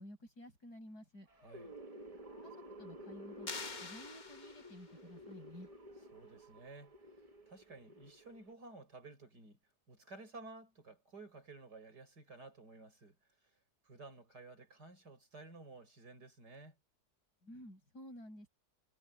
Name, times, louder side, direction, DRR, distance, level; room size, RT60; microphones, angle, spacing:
voice 1, 0.0-1.3 2.4-3.5 3.8-5.7 17.4-18.5, equal, 65° left, 8.1 m, -52 dB
sound 1, 1.3-8.5, equal, 20° right, 2.0 m, -53 dB
voice 2, 1.4-1.8 6.1-6.9 7.5-9.6 9.9-13.2 13.8-16.8, right 3 dB, 70° right, 6.6 m, -54 dB
sound 2, 3.5-5.0, left 4 dB, 30° left, 1.2 m, -46 dB
omnidirectional pair, 1.8 m